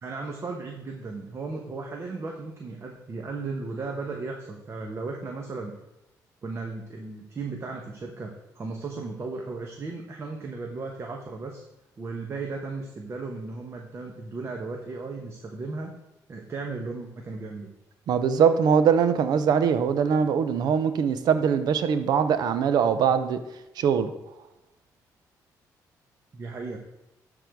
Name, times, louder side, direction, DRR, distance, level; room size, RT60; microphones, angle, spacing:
voice 1, 0.0-5.7 6.4-11.6 12.0-15.9 16.3-17.7 26.3-26.8, right 3 dB, 40° right, 1.1 m, -35 dB
voice 2, 18.1-23.4 23.8-24.1, right 7 dB, 70° right, 0.7 m, -22 dB
11.5 x 3.9 x 4.6 m
cardioid pair, 105°, 7 cm